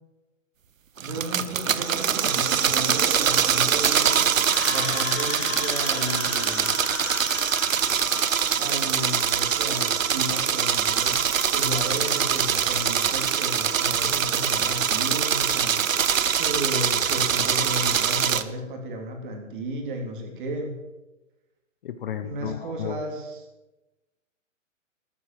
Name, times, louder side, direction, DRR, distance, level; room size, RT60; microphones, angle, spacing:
voice 1, 1.0-4.2 4.7-6.7 8.6-20.7 22.2-23.4, equal, 40° right, 3 dB, 3.4 m, -33 dB
sound 1, 1.0-18.4, right 8 dB, 85° right, 1.0 m, -23 dB
Screaming, 4.3-8.7, left 11 dB, 70° left, 0.5 m, -35 dB
voice 2, 21.8-23.0, left 9 dB, 45° left, 11 dB, 1.0 m, -33 dB
14.0 x 9.5 x 7.7 m, 1.1 s
hypercardioid pair, 150°, 39 cm